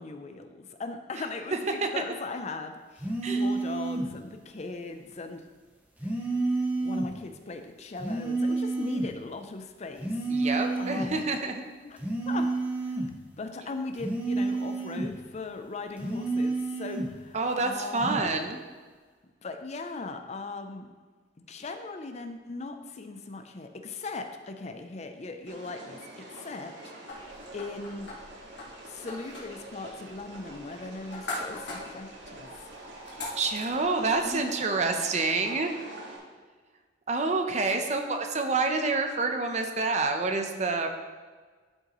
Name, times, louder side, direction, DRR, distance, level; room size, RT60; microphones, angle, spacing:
voice 1, 0.0-5.4 6.0-10.3 10.8-11.3 11.8-12.0 12.3-17.4 17.6-18.1 19.4-20.9 21.5-26.7 27.0-28.1 28.9-32.5 34.2-34.4 37.7-38.2, left 3 dB, 35° left, 7 dB, 0.5 m, -39 dB
sound 1, 3.0-4.1 6.0-7.1 8.0-9.1 10.0-11.1 12.0-13.2 14.0-15.2 16.0-17.2 18.0-18.3, right 2 dB, 10° right, 1.0 m, -29 dB
voice 2, 10.3-11.6 17.3-18.6 33.4-35.8 37.1-40.9, right 3 dB, 40° right, 5 dB, 0.7 m, -28 dB
sound 2, 25.5-36.2, right 1 dB, 75° right, 1.6 m, -46 dB
sound 3, 27.1-34.4, left 2 dB, 70° left, 2.1 m, -42 dB
12.0 x 5.5 x 3.0 m, 1.4 s
head